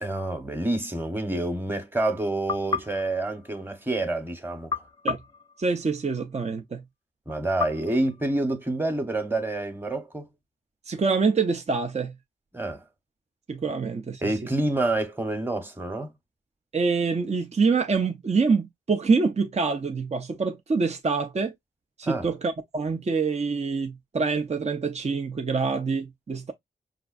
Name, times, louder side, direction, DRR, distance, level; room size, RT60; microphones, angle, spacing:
voice 1, 0.0-4.7 7.3-10.3 12.5-12.8 14.2-16.1 22.0-22.3, right 2 dB, 10° right, 1.1 m, -28 dB
sound 1, 2.5-4.1 4.7-6.3 7.6-8.9, left 5 dB, 25° left, 0.6 m, -35 dB
voice 2, 5.6-6.8 10.9-12.1 13.5-14.3 16.7-21.5 22.0-26.5, right 4 dB, 35° right, 0.6 m, -25 dB
4.9 x 2.4 x 2.4 m
cardioid pair, 55°, 18 cm